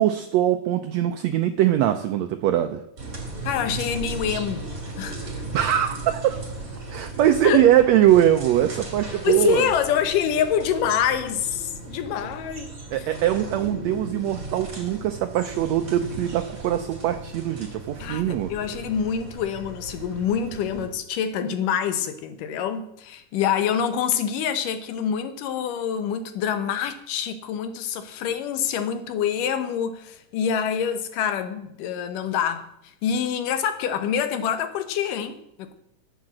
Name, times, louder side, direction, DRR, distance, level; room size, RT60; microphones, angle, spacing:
voice 1, 0.0-2.8 5.5-6.4 6.9-9.7 12.9-18.5, right 12 dB, 80° right, 1.5 m, -21 dB
sound 1, 3.0-20.9, right 2 dB, 25° right, 3.2 m, -37 dB
voice 2, 3.4-4.7 5.0-5.3 7.4-7.7 9.2-12.7 18.0-32.7 33.0-35.7, left 8 dB, 80° left, 2.6 m, -26 dB
11.5 x 7.9 x 7.6 m
omnidirectional pair, 3.7 m